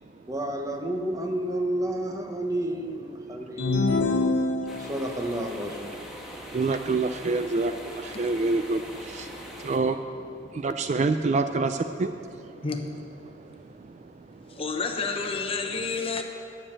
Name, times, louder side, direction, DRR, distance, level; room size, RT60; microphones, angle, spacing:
voice 1, 0.3-4.3 4.8-6.0 6.3-6.5, right 1 dB, 20° right, 4 dB, 0.8 m, -31 dB
sound 1, 3.6-5.2, left 3 dB, 70° left, 0.8 m, -25 dB
River Tay, 4.7-9.8, equal, 5° right, 1.2 m, -42 dB
voice 2, 6.5-9.3 9.6-10.0 10.5-12.1, right 3 dB, 40° right, 9 dB, 0.3 m, -26 dB
voice 3, 14.6-16.2, left 4 dB, 30° left, 4 dB, 0.8 m, -29 dB
10.0 x 6.8 x 8.7 m, 2.5 s
head